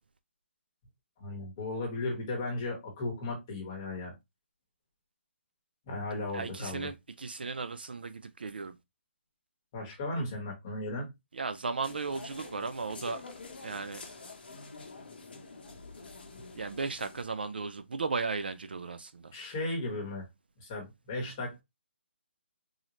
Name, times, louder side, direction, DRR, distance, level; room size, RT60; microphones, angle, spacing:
voice 1, 1.2-4.1 5.9-6.9 9.7-11.1 19.3-20.3 20.6-21.6, left 2 dB, 15° left, 1.0 m, -36 dB
voice 2, 6.3-8.8 11.3-13.2 13.6-14.0 16.6-19.3, right 4 dB, 50° right, 0.3 m, -36 dB
sound 1, 11.8-17.2, left 3 dB, 50° left, 0.9 m, -47 dB
3.8 x 2.1 x 2.9 m
hypercardioid pair, 180°, 7 cm